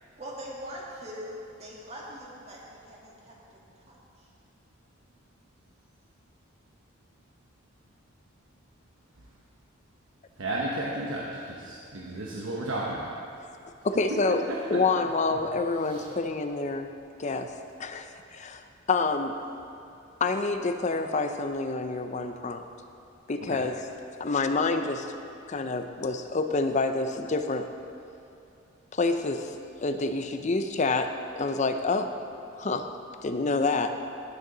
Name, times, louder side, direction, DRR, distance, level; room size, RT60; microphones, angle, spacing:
voice 1, 0.2-4.3, equal, 35° right, -4 dB, 1.8 m, -42 dB
voice 2, 10.4-13.1 14.5-14.8 15.9-16.0 23.4-23.6, right 1 dB, 90° right, -4 dB, 1.0 m, -33 dB
voice 3, 13.8-14.4 14.7-16.9 17.2-17.5 17.8-19.4 20.2-22.6 23.3-23.9 24.2-25.1 25.5-27.7 28.9-29.6 29.8-32.2 32.5-32.9 33.2-33.9, left 3 dB, 35° left, 7 dB, 0.5 m, -27 dB
16.0 x 6.7 x 3.9 m, 2.6 s
head